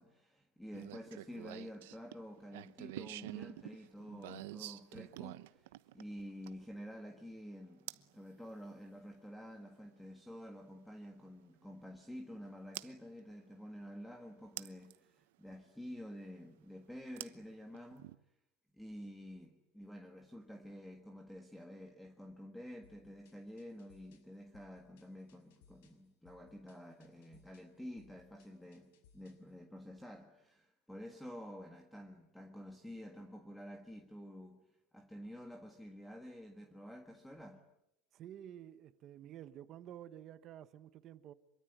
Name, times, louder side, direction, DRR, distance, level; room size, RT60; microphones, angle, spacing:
voice 1, 0.0-18.1 18.7-34.6 34.9-37.6, equal, ahead, 1.6 m, -50 dB
sound 1, 0.7-6.7 7.9-8.1 10.0-10.1 12.7-12.9 14.6-15.0 17.2-18.2, right 17 dB, 90° right, 1.0 m, -47 dB
sound 2, 22.8-29.5, left 7 dB, 85° left, 6.0 m, -68 dB
voice 2, 38.1-41.3, right 11 dB, 35° right, 1.2 m, -51 dB
26.0 x 23.5 x 9.4 m
cardioid pair, 170°, 0 cm